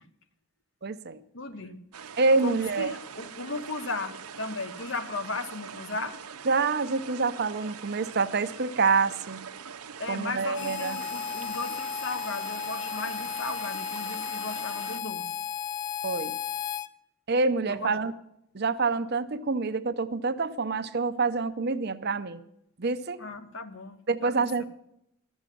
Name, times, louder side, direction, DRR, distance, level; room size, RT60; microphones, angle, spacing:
voice 1, 0.8-1.2 2.2-2.9 6.5-9.4 10.1-11.0 16.0-16.4 17.3-18.1 18.5-22.4 22.8-23.2 24.1-24.6, right 4 dB, 45° right, 11 dB, 0.7 m, -27 dB
voice 2, 1.3-1.8 2.4-6.2 10.0-15.3 17.7-18.0 23.2-24.3 24.6-24.7, left 3 dB, 55° left, 10 dB, 1.1 m, -36 dB
sound 1, 1.9-15.0, right 7 dB, 90° right, 0.8 m, -43 dB
Harmonica, 10.5-16.9, left 8 dB, 35° left, 0.5 m, -34 dB
12.5 x 7.2 x 9.2 m, 0.79 s
head